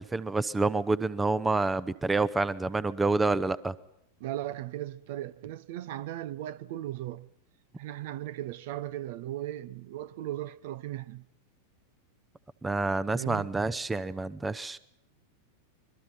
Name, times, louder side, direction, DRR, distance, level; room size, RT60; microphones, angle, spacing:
voice 1, 0.0-3.7 12.6-14.8, right 3 dB, 10° right, 0.8 m, -28 dB
voice 2, 4.2-7.3 7.8-11.2 13.2-13.5, right 13 dB, 50° right, 0.9 m, -37 dB
25.5 x 22.5 x 5.8 m
figure-of-eight pair, 90°, 0 cm